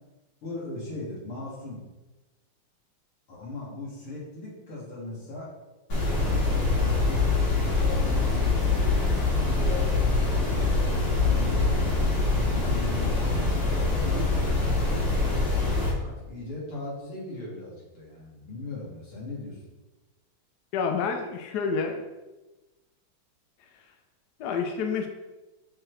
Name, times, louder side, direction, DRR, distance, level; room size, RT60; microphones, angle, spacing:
voice 1, 0.4-1.9 3.3-5.5 6.2-8.9 9.3-15.0 16.0-19.7, left 2 dB, 80° left, -7 dB, 3.3 m, -39 dB
sound 1, 5.9-15.9, left 3 dB, 45° left, 2.9 m, -24 dB
voice 2, 20.7-22.0 24.4-25.1, left 5 dB, 65° left, 5 dB, 1.1 m, -28 dB
7.4 x 4.4 x 3.4 m, 1.1 s
omnidirectional pair, 2.3 m